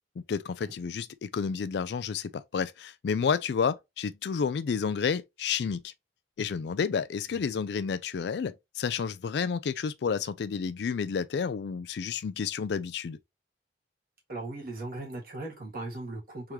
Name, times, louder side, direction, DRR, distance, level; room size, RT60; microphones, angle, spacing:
voice 1, 0.3-5.9 6.4-13.2, left 6 dB, 65° left, 0.3 m, -30 dB
voice 2, 14.3-16.5, right 2 dB, 50° right, 1.9 m, -38 dB
3.6 x 3.1 x 2.8 m
head